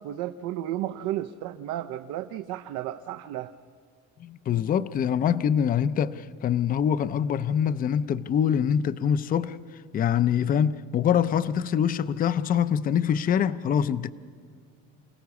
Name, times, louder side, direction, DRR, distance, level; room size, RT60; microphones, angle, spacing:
voice 1, 0.0-3.5, right 13 dB, 80° right, 0.7 m, -33 dB
voice 2, 4.2-9.6 9.9-14.1, left 8 dB, 30° left, 0.5 m, -24 dB
28.0 x 17.0 x 7.0 m
cardioid pair, 155°, 30 cm